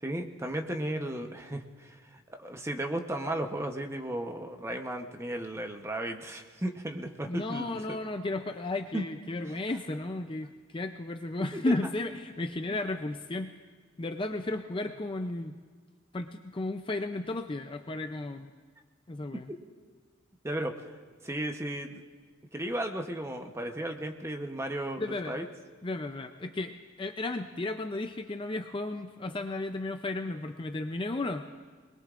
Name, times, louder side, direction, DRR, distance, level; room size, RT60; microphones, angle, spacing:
voice 1, 0.0-7.8 8.9-9.0 20.4-22.0 22.5-25.5, right 1 dB, 15° right, 4 dB, 0.9 m, -35 dB
voice 2, 7.3-13.5 14.0-15.6 16.1-18.5 19.1-19.5 25.0-25.3 25.8-31.4, left 2 dB, 25° left, 6 dB, 0.5 m, -34 dB
25.5 x 21.0 x 2.5 m, 1.5 s
head